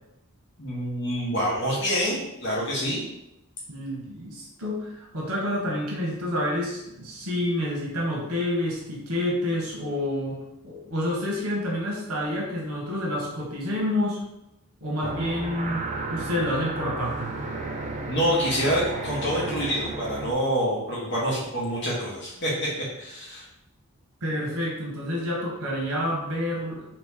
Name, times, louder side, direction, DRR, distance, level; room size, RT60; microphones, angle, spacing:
voice 1, 0.6-3.0 18.1-22.7 23.0-23.4, equal, 50° left, -5 dB, 0.9 m, -26 dB
voice 2, 3.7-14.2 14.8-17.3 24.2-26.9, left 1 dB, 85° right, -3 dB, 0.9 m, -28 dB
sound 1, 15.0-20.3, right 3 dB, 30° right, 0.4 m, -33 dB
3.0 x 2.9 x 3.5 m, 0.85 s
head